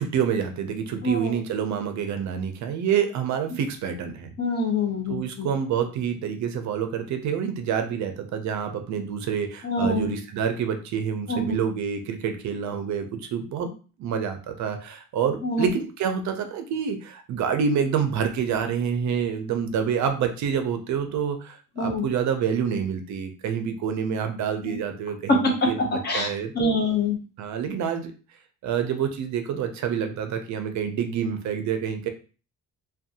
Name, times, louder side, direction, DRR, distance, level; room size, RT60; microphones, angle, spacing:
voice 1, 0.0-4.3 5.1-13.7 14.0-26.8 27.4-28.1 28.6-32.1, right 7 dB, 60° right, 7 dB, 0.5 m, -27 dB
voice 2, 1.0-1.4 4.4-5.5 9.6-10.1 11.3-11.6 15.4-15.7 21.8-22.0 24.6-24.8 26.0-26.3 26.6-27.2, left 2 dB, 30° left, 1 dB, 0.6 m, -26 dB
2.5 x 2.2 x 2.6 m, 0.36 s
cardioid pair, 160°, 32 cm